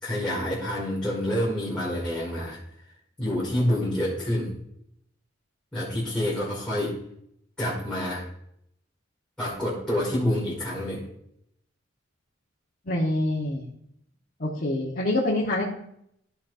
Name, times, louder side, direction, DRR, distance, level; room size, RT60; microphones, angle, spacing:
voice 1, 0.0-2.6 3.2-4.5 5.7-7.0 7.6-8.2 9.4-11.0, left 1 dB, 5° left, -9 dB, 2.4 m, -27 dB
voice 2, 12.9-13.6 14.4-15.6, left 1 dB, 50° left, -4 dB, 1.4 m, -26 dB
14.0 x 5.8 x 2.7 m, 0.74 s
head